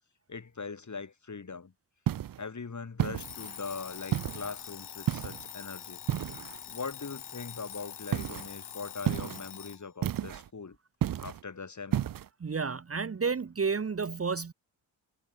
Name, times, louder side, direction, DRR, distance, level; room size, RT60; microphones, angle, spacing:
voice 1, 0.3-1.7 2.4-6.0 6.7-10.8 11.2-12.1, left 5 dB, 40° left, 6.3 m, -41 dB
sound 1, 2.1-2.4 3.0-3.6 4.1-4.5 5.1-5.5 6.1-6.6 8.1-8.5 9.1-9.5 10.0-10.5 11.0-11.4 11.9-12.3, right 11 dB, 50° right, 0.7 m, -31 dB
Alarm, 3.1-9.8, left 8 dB, 60° left, 4.0 m, -44 dB
voice 2, 12.4-14.5, right 5 dB, 30° right, 1.3 m, -31 dB
supercardioid pair, 55°, 45 cm